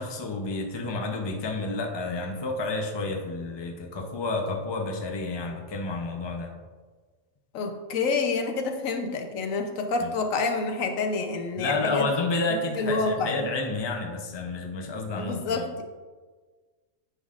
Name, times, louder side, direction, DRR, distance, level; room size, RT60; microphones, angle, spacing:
voice 1, 0.0-6.5 10.0-10.1 11.6-15.7, left 3 dB, 25° left, 2 dB, 0.6 m, -30 dB
voice 2, 7.5-12.1 12.8-13.5 15.1-15.8, left 4 dB, 85° left, 5 dB, 1.1 m, -28 dB
9.8 x 5.6 x 2.5 m, 1.4 s
omnidirectional pair, 1.3 m